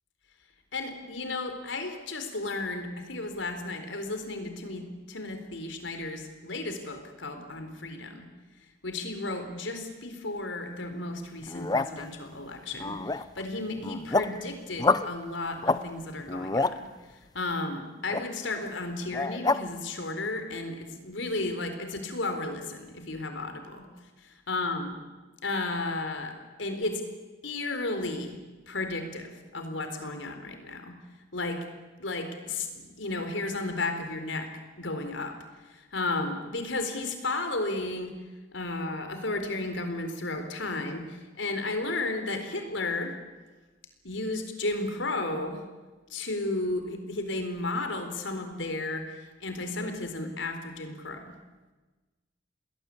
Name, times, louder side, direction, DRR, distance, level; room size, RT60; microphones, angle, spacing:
voice 1, 0.7-8.3 8.8-23.9 24.5-24.9 25.4-27.0 27.4-28.4 28.7-31.0 31.3-31.7 32.0-34.5 34.8-35.4 35.7-38.1 38.5-43.1 44.0-45.6 46.1-51.3, left 2 dB, 75° left, 6 dB, 4.2 m, -33 dB
sound 1, 11.4-12.0 12.7-13.4 13.8-14.4 14.8-15.1 15.6-15.8 16.2-16.8 18.1-18.2 19.1-19.6, left 3 dB, 20° left, 0.8 m, -27 dB
29.0 x 20.5 x 8.6 m, 1.3 s
head